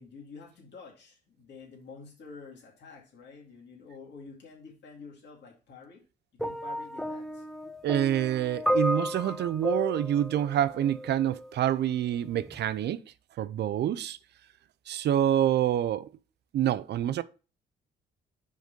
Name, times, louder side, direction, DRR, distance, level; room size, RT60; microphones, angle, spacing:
voice 1, 0.0-6.0 6.4-7.5, left 4 dB, 60° left, 2.3 m, -48 dB
sound 1, 6.4-11.5 12.4-12.6, equal, ahead, 0.5 m, -32 dB
voice 2, 7.8-13.0 13.4-14.2 14.9-16.1 16.5-17.2, right 11 dB, 60° right, 0.4 m, -27 dB
5.2 x 3.9 x 5.2 m
cardioid pair, 90°, 20 cm